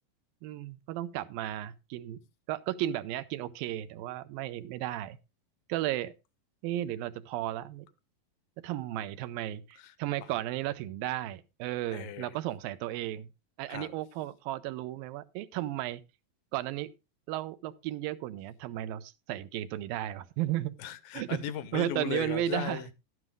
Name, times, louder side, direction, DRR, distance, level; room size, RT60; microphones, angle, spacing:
voice 1, 0.4-2.2 2.5-5.2 5.7-6.1 6.6-7.9 8.6-13.3 13.6-16.0 16.5-16.9 17.3-20.7 21.1-21.4 21.7-22.8, right 14 dB, 85° right, 2.5 m, -34 dB
voice 2, 9.8-10.3 11.9-12.3 13.7-13.9 20.8-22.9, left 11 dB, 75° left, 2.4 m, -37 dB
12.0 x 9.5 x 3.6 m
omnidirectional pair, 4.1 m